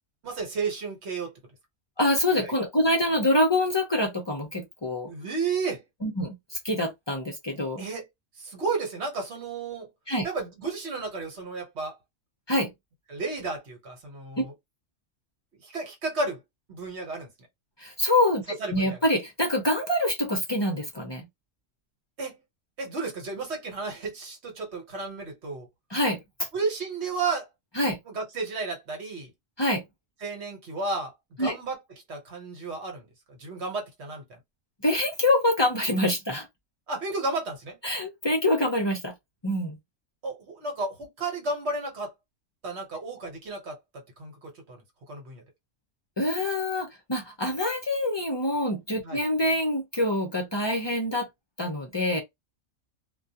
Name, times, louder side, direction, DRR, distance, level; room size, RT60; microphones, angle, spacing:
voice 1, 0.2-1.3 2.3-2.5 5.1-5.8 7.8-8.1 8.4-9.9 10.2-12.0 13.1-14.5 15.6-16.4 16.7-17.3 18.6-19.0 22.2-22.4 22.8-25.7 26.5-27.5 28.1-29.3 30.2-31.8 32.1-34.2 36.9-37.8 40.2-42.1 42.6-45.4 49.0-49.2, right 3 dB, 60° right, 1.2 m, -33 dB
voice 2, 2.0-5.1 6.0-7.9 10.1-10.3 12.5-12.7 17.8-21.2 25.9-26.2 27.8-28.0 29.6-29.8 31.4-31.6 34.8-36.5 37.8-39.1 39.4-39.8 46.2-51.3 51.6-52.2, left 1 dB, 30° left, 0.5 m, -25 dB
2.3 x 2.2 x 2.7 m
omnidirectional pair, 1.3 m